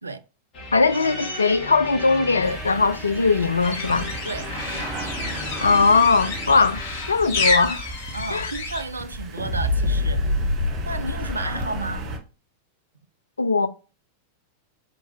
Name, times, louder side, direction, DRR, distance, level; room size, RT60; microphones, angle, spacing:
sound 1, 0.5-9.1 9.4-12.2, left 1 dB, 35° left, 1.6 m, -30 dB
voice 1, 0.7-4.1 5.6-6.8 7.1-7.9 8.3-8.5 13.4-13.7, left 4 dB, 75° left, 0.4 m, -20 dB
sound 2, 2.4-12.2, right 2 dB, 35° right, 0.9 m, -36 dB
sound 3, 3.6-8.8, left 4 dB, 55° left, 1.0 m, -30 dB
voice 2, 8.1-10.3 10.8-12.1, right 3 dB, 80° right, 0.4 m, -32 dB
4.4 x 3.8 x 2.6 m
figure-of-eight pair, 90°, 0 cm